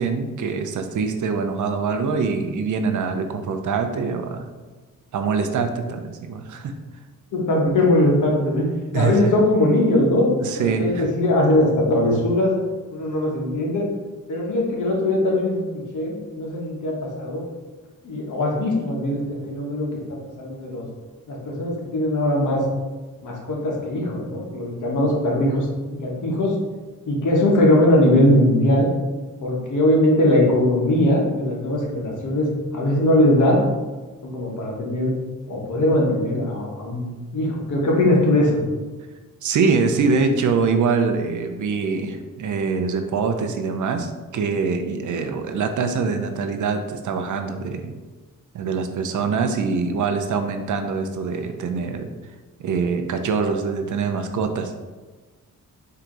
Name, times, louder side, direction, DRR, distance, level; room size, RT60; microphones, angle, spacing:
voice 1, 0.0-4.5 5.1-6.7 8.9-9.3 10.4-11.1 39.4-47.9 48.5-52.1 52.6-54.7, right 5 dB, 60° right, 6 dB, 0.6 m, -24 dB
voice 2, 7.3-8.7 8.9-10.3 10.6-12.5 12.9-13.8 14.3-17.4 18.0-20.9 21.3-22.6 23.2-25.7 25.9-26.6 27.0-28.9 29.4-33.6 34.2-35.1 35.5-38.6, left 1 dB, 60° left, -1 dB, 1.2 m, -20 dB
4.6 x 2.9 x 3.8 m, 1.3 s
cardioid pair, 90°, 33 cm